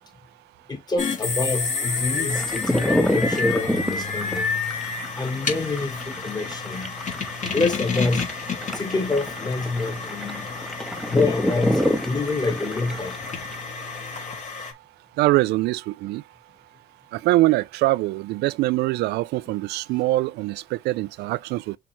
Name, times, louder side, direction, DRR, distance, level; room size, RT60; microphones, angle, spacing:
voice 1, 0.7-4.6 5.2-7.0 7.5-8.3 8.7-10.5 11.1-13.2, left 3 dB, 25° left, 2.3 m, -26 dB
sound 1, 1.0-14.7, left 4 dB, 45° left, 3.4 m, -30 dB
sound 2, 2.3-13.6, equal, ahead, 1.1 m, -28 dB
voice 2, 15.2-16.2 17.1-21.8, right 18 dB, 80° right, 0.5 m, -23 dB
6.4 x 4.5 x 3.6 m
cardioid pair, 110°, 17 cm